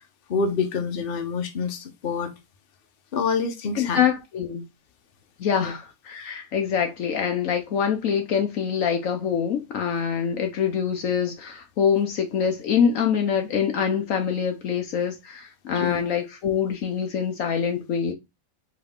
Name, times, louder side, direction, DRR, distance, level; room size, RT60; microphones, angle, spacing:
voice 1, 0.3-2.3 3.1-4.0 5.6-5.7 15.8-16.0, left 5 dB, 45° left, 1.0 m, -26 dB
voice 2, 3.7-4.6 5.4-18.1, left 7 dB, 65° left, 1.1 m, -25 dB
4.7 x 3.2 x 3.5 m
omnidirectional pair, 1.5 m